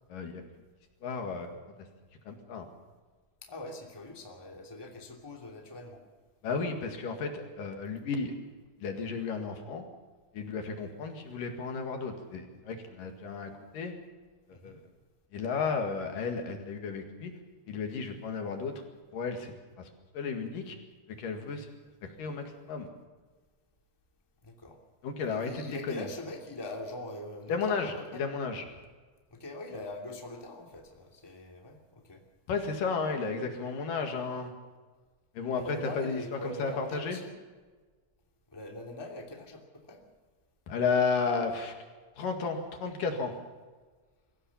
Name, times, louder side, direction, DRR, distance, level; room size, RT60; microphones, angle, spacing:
voice 1, 0.1-0.4 1.0-1.5 2.3-2.7 6.4-8.3 8.8-9.8 10.4-13.9 14.6-14.8 15.3-17.3 17.7-18.8 19.1-19.5 20.1-20.8 21.2-21.7 22.2-22.9 25.0-25.5 25.9-26.0 27.5-28.6 32.5-34.5 35.4-35.6 36.0-37.2 40.7-41.7 42.2-43.3, left 5 dB, 65° left, 4 dB, 3.5 m, -33 dB
voice 2, 3.4-6.0 14.5-14.8 24.4-24.8 25.3-28.2 29.3-32.2 35.5-37.3 38.5-40.0, left 1 dB, 5° left, 1 dB, 2.4 m, -42 dB
23.0 x 16.0 x 7.2 m, 1.4 s
omnidirectional pair, 4.2 m